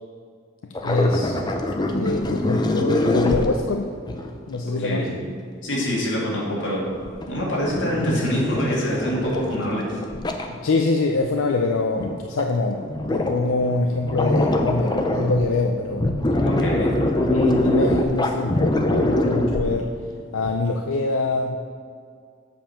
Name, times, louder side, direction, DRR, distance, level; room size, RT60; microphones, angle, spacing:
voice 1, 0.6-1.4 1.9-4.0 4.5-5.1 10.5-16.1 16.6-16.9 17.1-19.9 20.3-21.6, left 3 dB, 90° left, 2 dB, 0.5 m, -24 dB
sound 1, 0.7-4.3 6.9-10.5 11.4-11.5 11.7-12.1 12.4-12.5 12.7-13.7 13.9-15.6 15.9-20.1 20.4-20.5, left 1 dB, 20° left, 0.5 m, -23 dB
voice 2, 4.8-5.1 5.6-6.9 7.3-10.0 16.4-16.9, equal, 70° left, -4 dB, 2.3 m, -25 dB
7.5 x 5.4 x 5.8 m, 2.1 s
head